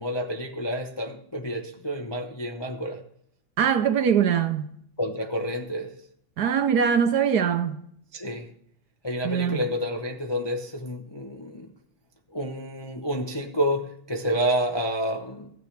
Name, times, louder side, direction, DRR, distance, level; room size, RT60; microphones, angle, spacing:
voice 1, 0.0-3.0 5.0-6.0 8.1-8.5 9.0-11.7 12.3-15.5, equal, 25° left, 0.5 m, -29 dB
voice 2, 3.6-4.7 6.4-7.8 9.2-9.6, right 7 dB, 65° right, 1.1 m, -22 dB
14.5 x 9.4 x 3.3 m
omnidirectional pair, 2.1 m